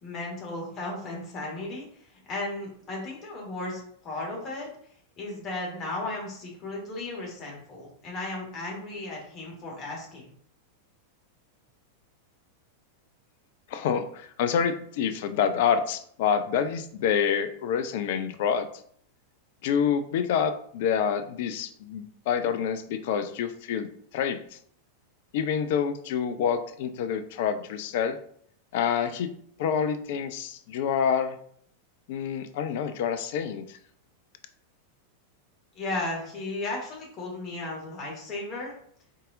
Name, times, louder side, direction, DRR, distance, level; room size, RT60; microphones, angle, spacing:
voice 1, 0.0-1.8 2.3-4.7 5.2-10.3 35.7-38.7, left 2 dB, 30° left, -2 dB, 1.6 m, -35 dB
voice 2, 13.7-18.7 19.6-24.6 25.3-28.2 28.7-29.3 29.6-31.4 32.1-33.8, left 7 dB, 50° left, 10 dB, 0.4 m, -27 dB
4.0 x 3.7 x 2.5 m, 0.62 s
figure-of-eight pair, 90°, 0 cm